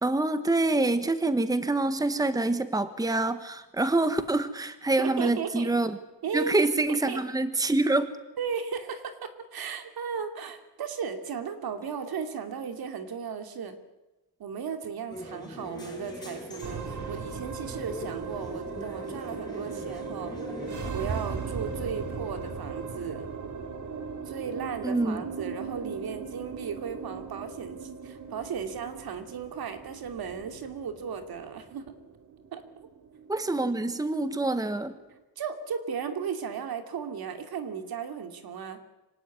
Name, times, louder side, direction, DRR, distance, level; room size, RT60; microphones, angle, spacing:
voice 1, 0.0-6.0 6.3-8.1 24.8-25.3 33.3-34.9, right 2 dB, 10° right, 11 dB, 1.4 m, -26 dB
voice 2, 5.0-5.7 6.2-6.5 7.1-7.2 8.4-13.7 14.4-20.4 20.9-23.3 24.3-31.9 32.5-32.6 35.4-38.8, right 6 dB, 70° right, 7 dB, 2.9 m, -35 dB
sound 1, 15.1-20.9, left 1 dB, 10° left, 6.9 m, -42 dB
sound 2, 16.6-35.1, right 5 dB, 50° right, 2.5 m, -38 dB
25.5 x 17.5 x 9.8 m, 1.0 s
cardioid pair, 105°, 38 cm